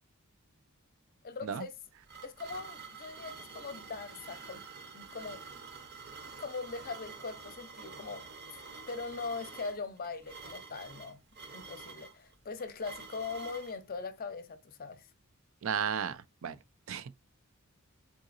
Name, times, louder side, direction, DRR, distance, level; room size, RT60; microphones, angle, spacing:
voice 1, 1.2-1.7 2.2-4.6 4.9-5.4 6.4-8.3 8.9-11.2 11.5-15.1, left 4 dB, 45° left, 0.6 m, -41 dB
sound 1, 1.6-13.8, right 4 dB, 50° right, 0.9 m, -48 dB
voice 2, 15.6-16.6 16.9-17.3, right 7 dB, 65° right, 0.4 m, -34 dB
3.8 x 3.7 x 2.5 m
head